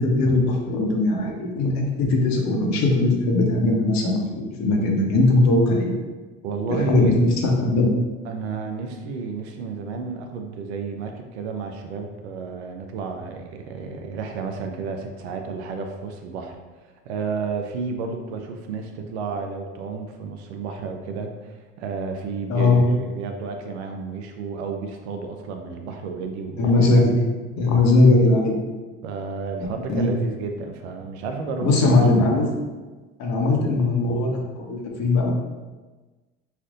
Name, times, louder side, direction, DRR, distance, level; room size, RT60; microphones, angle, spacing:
voice 1, 0.0-1.7 2.0-5.9 6.7-7.9 22.5-22.8 26.6-27.1 27.6-28.6 29.9-30.1 31.6-32.5 33.2-35.3, left 2 dB, 55° left, 0 dB, 1.0 m, -19 dB
voice 2, 6.4-7.2 8.2-16.6 16.8-27.1 29.0-32.1, right 4 dB, 80° right, 4 dB, 0.6 m, -31 dB
5.1 x 2.5 x 2.5 m, 1.3 s
hypercardioid pair, 75°, 33 cm